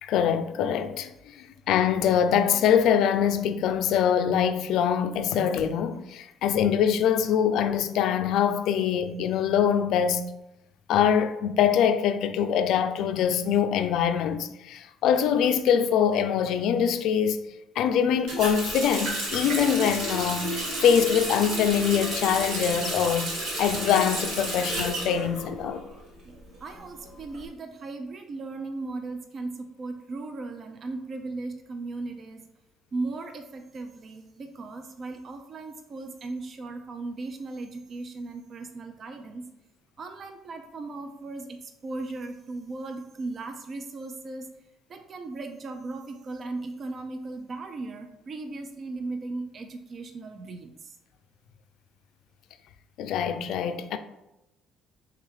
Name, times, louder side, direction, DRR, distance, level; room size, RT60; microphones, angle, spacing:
voice 1, 0.0-10.2 10.9-17.5 17.8-25.8 53.0-54.0, left 8 dB, 70° left, 0.3 m, -24 dB
Water tap faucet, 18.3-26.0 26.3-27.4, right 1 dB, 80° right, 1.4 m, -31 dB
voice 2, 26.6-32.4 32.9-39.4 40.0-44.5 44.9-50.7, right 3 dB, 45° right, 0.5 m, -37 dB
3.3 x 3.3 x 3.6 m
supercardioid pair, 75°, 0 cm